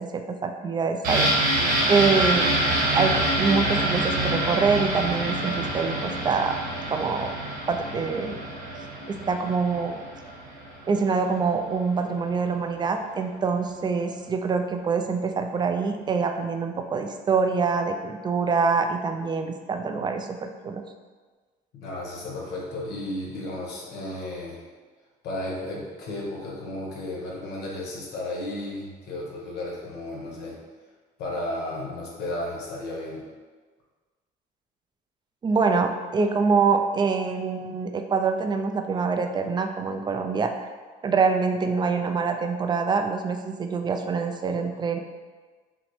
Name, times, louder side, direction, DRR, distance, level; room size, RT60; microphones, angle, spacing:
voice 1, 0.0-1.6 1.9-2.5 2.9-6.6 6.9-7.3 7.7-8.4 9.1-10.0 10.9-20.8 35.4-40.5 41.0-45.0, right 5 dB, 25° right, 5 dB, 0.4 m, -25 dB
sound 1, 1.0-10.7 11.0-11.1, right 1 dB, 65° right, 1.2 m, -26 dB
voice 2, 21.7-24.6 25.2-30.6 31.2-33.2, left 1 dB, 75° left, -3 dB, 1.2 m, -33 dB
5.7 x 2.1 x 3.1 m, 1.4 s
cardioid pair, 110°, 17 cm